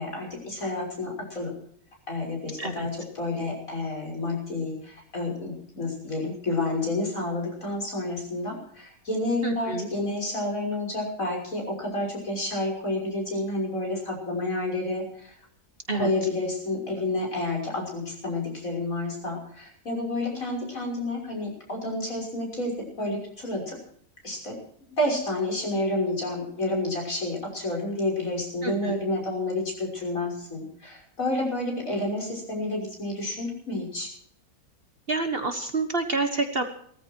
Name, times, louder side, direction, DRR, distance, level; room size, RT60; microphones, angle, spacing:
voice 1, 0.0-1.5 2.1-15.3 15.9-23.8 24.2-24.6 24.9-34.1, left 2 dB, 60° left, -1 dB, 6.4 m, -30 dB
voice 2, 9.4-9.9 15.9-16.1 28.6-29.0 35.1-36.6, right 3 dB, 40° right, 6 dB, 1.6 m, -28 dB
18.0 x 14.0 x 4.7 m, 0.63 s
omnidirectional pair, 1.6 m